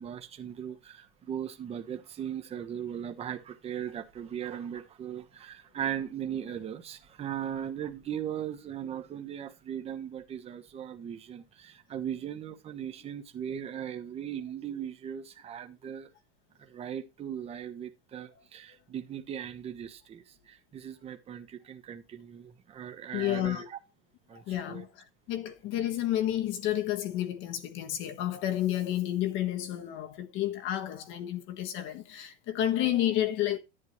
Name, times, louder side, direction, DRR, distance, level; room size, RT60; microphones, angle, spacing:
voice 1, 0.0-16.1 16.7-23.8 24.3-24.9, right 9 dB, 20° right, 1.1 m, -38 dB
voice 2, 23.1-23.7 24.5-24.9 25.3-33.6, left 12 dB, 35° left, 1.5 m, -30 dB
11.0 x 9.4 x 3.1 m
supercardioid pair, 155°, 33 cm